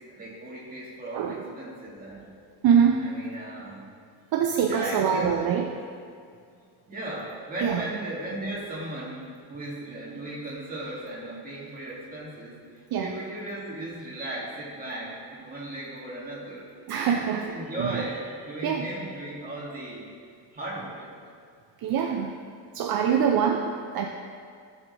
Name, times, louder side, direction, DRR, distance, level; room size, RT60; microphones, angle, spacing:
voice 1, 0.1-2.3 3.0-3.8 4.7-5.6 6.9-9.2 9.5-12.6 13.0-16.7 17.1-20.1 20.5-21.1, right 1 dB, 20° right, -6 dB, 2.2 m, -36 dB
voice 2, 1.1-1.4 2.6-3.1 4.3-5.8 7.6-7.8 12.9-13.2 16.9-17.5 17.8-18.0 18.6-18.9 21.8-22.3 22.7-24.1, right 7 dB, 60° right, 3 dB, 0.6 m, -24 dB
15.0 x 6.4 x 3.2 m, 2.2 s
cardioid pair, 180°, 42 cm